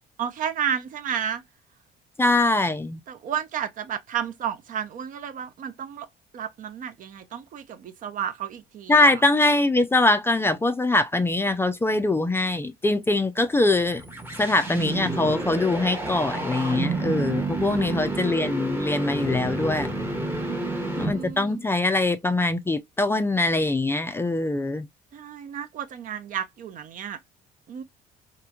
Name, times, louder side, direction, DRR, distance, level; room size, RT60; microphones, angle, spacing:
voice 1, 0.2-1.4 3.1-6.1 6.3-9.1 17.6-18.3 20.4-21.6 25.1-27.2 27.7-27.8, right 8 dB, 50° right, 0.5 m, -32 dB
voice 2, 2.2-3.0 8.9-14.0 14.4-19.9 21.0-24.9, left 2 dB, 15° left, 0.3 m, -23 dB
sound 1, 13.8-21.5, right 2 dB, 15° right, 0.8 m, -30 dB
2.9 x 2.5 x 2.3 m
cardioid pair, 110°, 17 cm